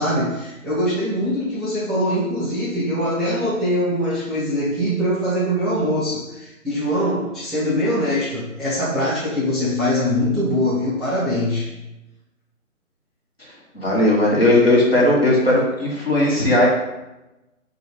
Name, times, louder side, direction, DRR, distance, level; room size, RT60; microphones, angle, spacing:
voice 1, 0.0-11.8, equal, ahead, -11 dB, 0.5 m, -22 dB
voice 2, 13.7-16.7, left 1 dB, 45° left, -4 dB, 1.1 m, -17 dB
4.6 x 2.3 x 3.5 m, 0.98 s
figure-of-eight pair, 180°, 42 cm